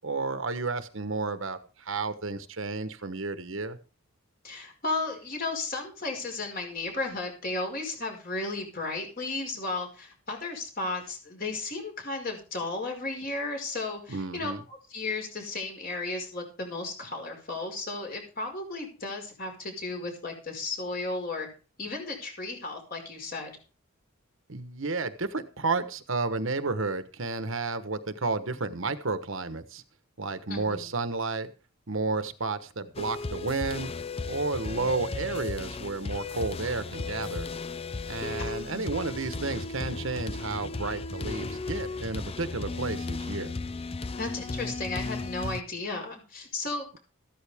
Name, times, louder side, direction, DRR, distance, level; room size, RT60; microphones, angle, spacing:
voice 1, 0.0-3.8 14.1-14.6 24.5-29.8 30.2-31.5 31.9-33.9 34.3-37.5 38.1-43.5, right 3 dB, 65° right, 11 dB, 1.2 m, -32 dB
voice 2, 4.4-21.5 21.8-23.5 30.5-30.9 38.4-39.0 44.2-47.0, left 3 dB, 40° left, 2 dB, 5.0 m, -34 dB
sound 1, 32.9-45.6, left 3 dB, 25° left, 0.5 m, -35 dB
14.5 x 13.0 x 3.6 m, 0.35 s
head